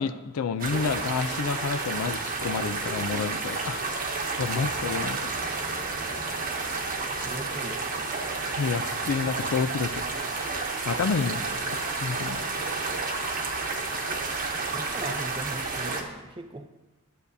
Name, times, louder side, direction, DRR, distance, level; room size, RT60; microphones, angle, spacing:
voice 1, 0.0-3.8 4.4-5.3 8.6-10.0 10.8-12.6, left 5 dB, 80° left, 11 dB, 0.4 m, -29 dB
sound 1, 0.6-16.0, right 3 dB, 40° right, 1.0 m, -31 dB
voice 2, 7.2-8.1 14.7-16.7, right 2 dB, 20° right, 7 dB, 0.5 m, -39 dB
12.5 x 8.3 x 2.7 m, 1.1 s
head